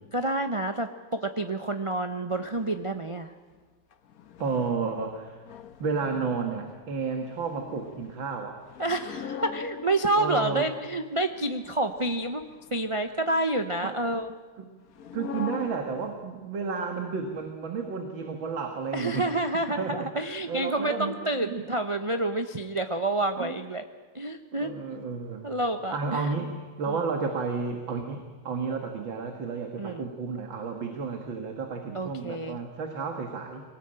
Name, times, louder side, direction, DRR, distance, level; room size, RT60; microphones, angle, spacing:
voice 1, 0.1-3.3 8.8-12.4 12.7-14.3 18.9-23.8 24.1-25.1 25.4-26.3 26.9-27.0 29.8-30.1 31.9-32.6, right 2 dB, 40° right, 6 dB, 0.4 m, -29 dB
sound 1, 2.3-3.1 3.5-3.6 3.9-10.7 11.3-13.3 14.9-16.3 16.8-16.9 17.4-17.5 18.6-19.3, left 7 dB, 55° left, 1.3 m, -44 dB
voice 2, 4.4-5.5 5.8-8.6 10.2-10.7 13.8-14.0 14.6-14.7 15.1-19.3 19.8-21.6 23.4-23.5 24.5-25.5 25.9-33.6, right 5 dB, 80° right, 4 dB, 2.4 m, -32 dB
23.0 x 18.5 x 8.9 m, 1.4 s
omnidirectional pair, 2.1 m